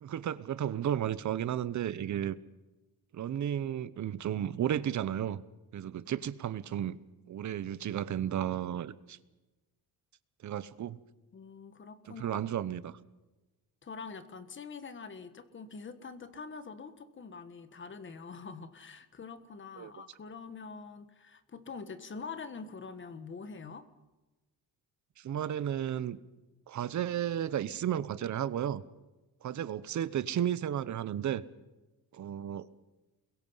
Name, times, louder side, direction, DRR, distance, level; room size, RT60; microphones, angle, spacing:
voice 1, 0.0-2.4 3.1-5.4 5.7-7.0 7.3-9.2 10.4-11.0 12.2-13.0 19.8-19.9 25.2-26.2 26.7-28.8 29.4-31.4 32.1-32.7, right 10 dB, 50° right, 16 dB, 0.9 m, -33 dB
voice 2, 11.3-12.4 13.8-23.9, left 5 dB, 30° left, 11 dB, 1.5 m, -45 dB
29.5 x 22.0 x 5.7 m, 1.1 s
cardioid pair, 160°, 38 cm